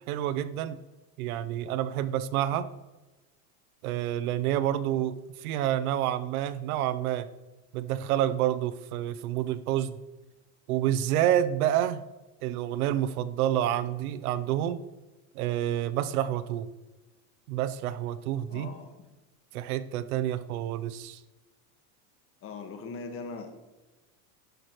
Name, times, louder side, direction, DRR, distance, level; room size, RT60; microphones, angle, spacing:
voice 1, 0.1-0.8 1.2-2.7 3.8-7.3 7.7-10.0 10.7-12.0 12.4-14.8 15.3-16.7 17.5-18.7 19.5-21.2, right 11 dB, 85° right, 14 dB, 0.8 m, -28 dB
voice 2, 18.5-19.1 22.4-23.5, left 4 dB, 30° left, 5 dB, 1.6 m, -40 dB
11.5 x 11.0 x 3.1 m, 1.1 s
supercardioid pair, 145°, 42 cm